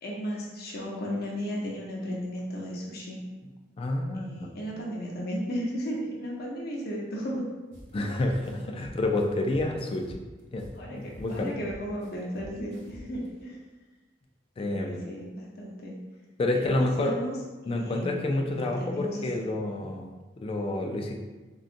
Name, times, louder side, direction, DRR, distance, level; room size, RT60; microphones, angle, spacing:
voice 1, 0.0-3.2 4.1-7.5 10.7-11.0 11.3-13.6 14.6-15.9 16.5-17.4 17.6-18.4 18.6-19.2, equal, 55° left, -2 dB, 0.7 m, -35 dB
voice 2, 3.8-4.5 7.9-10.2 10.5-11.6 14.6-15.0 16.4-17.1 17.7-20.1 20.4-21.2, left 2 dB, 30° left, 3 dB, 0.3 m, -29 dB
sound 1, 7.7-7.9 8.2-10.8 11.1-13.3, equal, 85° right, 0.8 m, -47 dB
3.8 x 2.3 x 2.5 m, 1.2 s
head